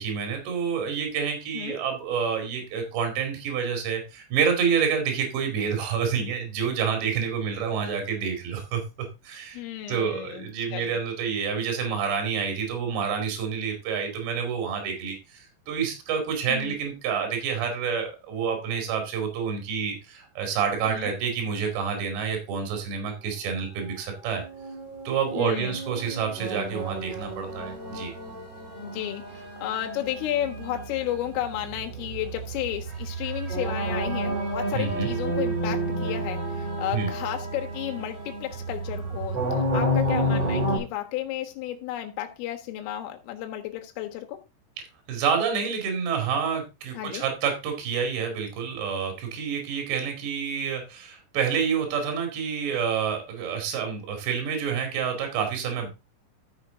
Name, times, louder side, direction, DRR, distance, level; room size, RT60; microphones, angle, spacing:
voice 1, 0.0-8.8 9.2-9.6 9.9-24.4 25.1-28.1 34.7-35.1 36.9-37.1 45.1-55.9, right 6 dB, 65° right, 4.3 m, -28 dB
voice 2, 9.5-11.0 16.5-16.8 20.9-21.2 25.4-25.8 28.8-44.4 46.9-47.3, left 12 dB, 80° left, 3.9 m, -33 dB
sound 1, 24.2-40.8, right 1 dB, 30° right, 7.3 m, -31 dB
13.0 x 6.6 x 3.7 m
omnidirectional pair, 5.8 m